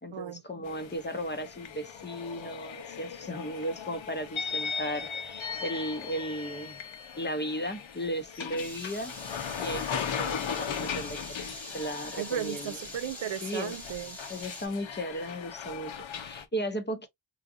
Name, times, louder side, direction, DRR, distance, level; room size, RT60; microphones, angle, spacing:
voice 1, 0.0-6.8 7.2-9.1 9.4-11.4 11.7-12.8 13.4-13.8 14.3-17.1, equal, 25° left, 0.7 m, -35 dB
sound 1, 0.6-16.5, left 7 dB, 75° left, 0.8 m, -38 dB
sound 2, 8.6-14.7, equal, 5° left, 1.0 m, -44 dB
voice 2, 12.2-14.2, right 9 dB, 70° right, 0.5 m, -35 dB
3.8 x 2.5 x 2.5 m
wide cardioid pair, 100°, 47 cm